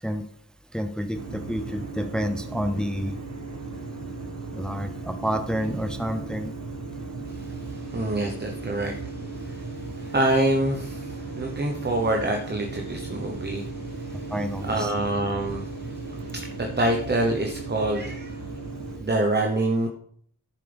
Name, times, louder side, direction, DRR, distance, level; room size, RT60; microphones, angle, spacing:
voice 1, 0.7-3.2 4.5-6.5 14.3-14.9, equal, ahead, 8 dB, 0.7 m, -29 dB
sound 1, 1.1-19.0, right 3 dB, 55° right, 1.7 m, -36 dB
voice 2, 7.9-14.3 14.7-15.9 16.3-18.4 19.0-19.9, right 2 dB, 30° right, 2 dB, 1.0 m, -26 dB
10.0 x 7.4 x 3.5 m, 0.63 s
wide cardioid pair, 75°, 33 cm